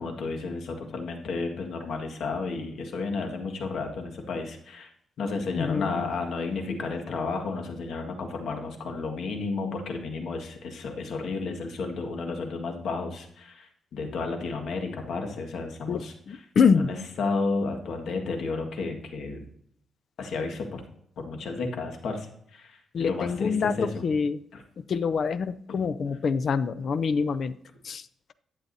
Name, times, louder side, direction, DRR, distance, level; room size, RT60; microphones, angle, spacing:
voice 1, 0.0-4.9 5.2-16.4 16.8-19.4 20.2-20.8 21.2-24.0 24.5-24.6, left 4 dB, 65° left, 3 dB, 1.7 m, -32 dB
voice 2, 5.6-5.9 15.9-16.9 22.9-24.4 24.8-27.6 27.8-28.1, left 5 dB, 50° left, 15 dB, 0.5 m, -25 dB
11.5 x 8.7 x 2.7 m, 0.69 s
cardioid pair, 135°, 0 cm